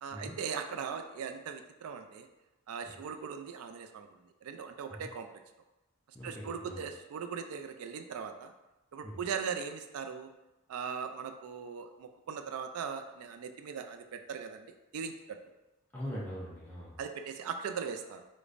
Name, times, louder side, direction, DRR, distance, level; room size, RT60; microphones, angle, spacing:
voice 1, 0.0-2.3 2.7-4.1 4.4-5.3 6.2-8.5 8.9-10.3 10.7-15.4 17.0-18.3, right 6 dB, 85° right, 7 dB, 0.3 m, -39 dB
voice 2, 6.1-6.8 9.0-9.2 15.9-17.0, equal, 10° left, -7 dB, 0.5 m, -42 dB
4.9 x 2.1 x 2.5 m, 1.0 s
head